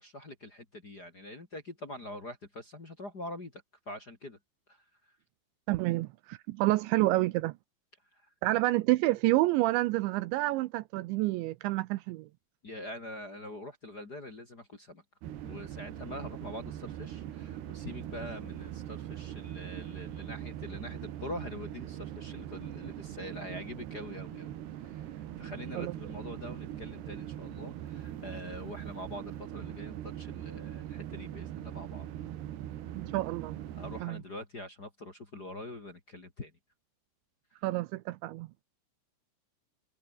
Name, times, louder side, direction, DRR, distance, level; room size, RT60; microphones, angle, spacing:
voice 1, 0.0-4.4 4.7-4.8 8.1-8.3 12.6-15.0 15.4-32.1 33.7-36.5, left 1 dB, 30° left, 2.1 m, -44 dB
voice 2, 5.7-7.6 8.4-12.3 25.8-26.0 33.0-33.6 34.0-34.2 37.6-38.5, right 19 dB, 85° right, 2.8 m, -28 dB
sound 1, 15.2-34.0, right 12 dB, 65° right, 3.5 m, -41 dB
omnidirectional pair, 5.7 m